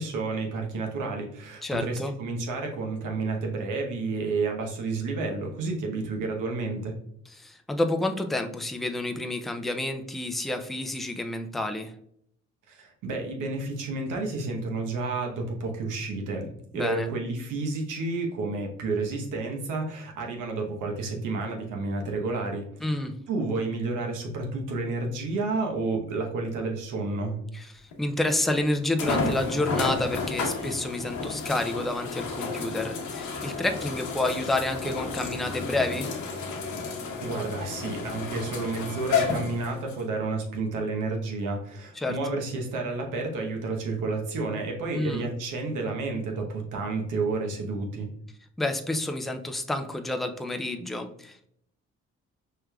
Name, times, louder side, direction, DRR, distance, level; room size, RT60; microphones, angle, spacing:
voice 1, 0.0-6.9 12.7-16.5 16.7-22.6 23.3-27.4 37.2-48.1, right 3 dB, 85° right, 2 dB, 1.0 m, -30 dB
voice 2, 1.6-2.1 7.4-11.9 16.7-17.1 22.8-23.1 27.5-36.2 42.0-42.2 44.9-45.3 48.6-51.5, left 2 dB, ahead, 6 dB, 0.3 m, -29 dB
sound 1, 27.9-28.0 29.0-40.0 40.7-40.8 44.3-44.4, left 4 dB, 85° left, 1.0 m, -31 dB
4.7 x 3.2 x 2.3 m, 0.70 s
cardioid pair, 90°, 30 cm